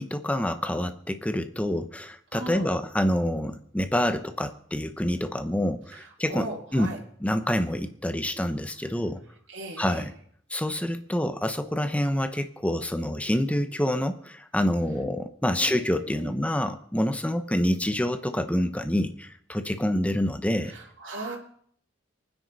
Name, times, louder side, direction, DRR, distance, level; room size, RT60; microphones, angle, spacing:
voice 1, 0.0-9.2 9.8-10.1 10.5-20.7, left 1 dB, 5° left, 9 dB, 0.8 m, -27 dB
voice 2, 2.3-2.7 5.9-7.0 9.5-10.1 12.0-12.2 15.4-16.4 20.6-21.4, right 2 dB, 65° right, -3 dB, 2.8 m, -39 dB
24.0 x 9.7 x 4.0 m, 0.63 s
head